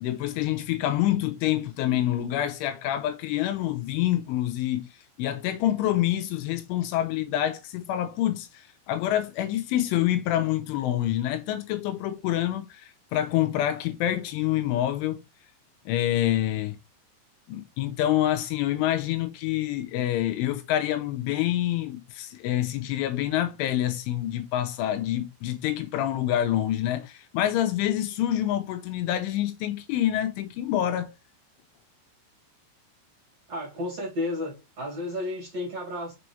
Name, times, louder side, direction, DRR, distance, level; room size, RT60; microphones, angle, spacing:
voice 1, 0.0-4.9 5.2-15.2 15.9-16.8 17.5-31.1, left 12 dB, 80° left, 3.1 m, -27 dB
voice 2, 33.5-36.1, left 2 dB, 40° right, 2.7 m, -32 dB
6.2 x 5.9 x 3.2 m
omnidirectional pair, 5.7 m